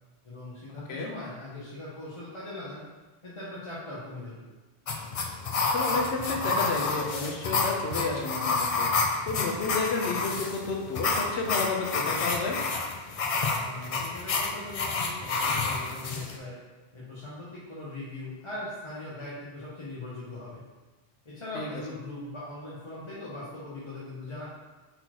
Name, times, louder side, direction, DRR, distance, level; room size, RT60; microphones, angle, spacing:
voice 1, 0.2-2.9 3.2-4.4 13.6-16.6 16.9-20.6 21.2-24.5, left 2 dB, 30° left, -8 dB, 0.8 m, -40 dB
sound 1, 4.9-16.4, left 3 dB, 55° left, 0.4 m, -29 dB
voice 2, 5.7-12.6 21.5-21.7, left 4 dB, 75° left, 0 dB, 1.0 m, -31 dB
4.1 x 3.9 x 2.9 m, 1.2 s
omnidirectional pair, 1.1 m